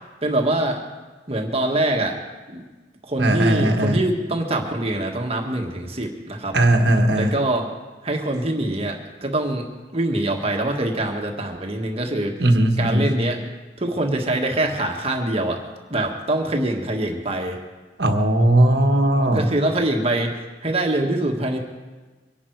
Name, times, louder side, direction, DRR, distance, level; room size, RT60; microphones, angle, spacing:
voice 1, 0.2-0.8 1.3-2.2 2.5-2.6 3.0-6.5 7.1-7.7 8.0-9.7 9.9-12.4 12.8-13.4 13.8-15.6 15.9-17.6 19.2-21.6, right 1 dB, 35° right, 1 dB, 1.7 m, -24 dB
voice 2, 3.2-4.0 6.5-7.3 12.4-13.1 18.0-19.5, right 1 dB, 65° right, 5 dB, 1.5 m, -18 dB
24.0 x 11.5 x 4.7 m, 1.3 s
head